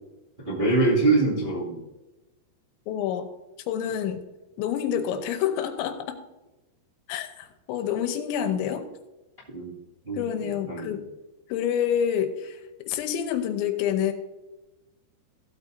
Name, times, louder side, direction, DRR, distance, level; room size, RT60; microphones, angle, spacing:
voice 1, 0.4-1.8 9.5-9.8 10.0-11.0, right 3 dB, 25° right, -7 dB, 1.1 m, -24 dB
voice 2, 2.9-3.3 3.7-4.2 4.6-6.2 7.1-8.8 10.1-11.0 11.5-12.6 12.9-14.1, left 9 dB, 90° left, 7 dB, 3.2 m, -27 dB
15.5 x 8.3 x 2.7 m, 1.0 s
omnidirectional pair, 5.2 m